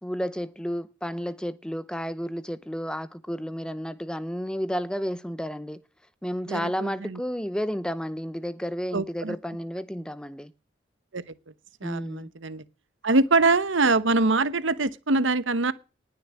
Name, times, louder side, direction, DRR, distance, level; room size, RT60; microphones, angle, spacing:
voice 1, 0.0-5.8 6.2-10.5 11.8-12.3, equal, 5° left, 0.6 m, -32 dB
voice 2, 6.5-7.2 8.9-9.4 11.1-11.2 11.8-12.6 13.0-15.7, right 3 dB, 75° right, 1.0 m, -24 dB
19.5 x 6.6 x 8.4 m
head